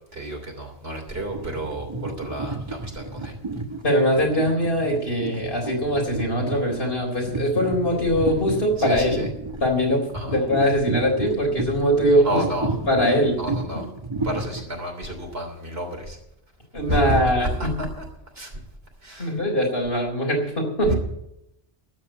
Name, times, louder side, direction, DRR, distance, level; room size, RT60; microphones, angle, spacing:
voice 1, 0.1-3.3 8.8-9.3 10.1-10.4 12.2-12.7 13.4-13.9 14.2-16.2 16.9-18.0 18.4-18.5 19.0-19.4 20.8-20.9, right 1 dB, 80° right, 2 dB, 3.5 m, -30 dB
sound 1, 1.1-14.6, right 2 dB, 30° right, 1.4 m, -32 dB
voice 2, 3.8-9.2 9.6-10.0 10.3-12.4 12.9-13.4 16.7-17.7 19.2-20.9, equal, 75° left, 1 dB, 4.2 m, -22 dB
12.5 x 8.3 x 9.1 m, 0.82 s
omnidirectional pair, 1.0 m